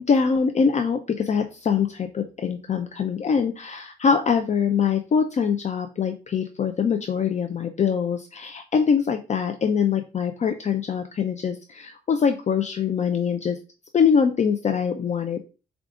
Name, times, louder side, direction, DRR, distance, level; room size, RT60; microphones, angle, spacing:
voice 1, 0.0-13.6 13.9-15.4, left 6 dB, 35° left, 6 dB, 0.5 m, -23 dB
4.7 x 2.4 x 3.6 m, 0.33 s
cardioid pair, 90°, 20 cm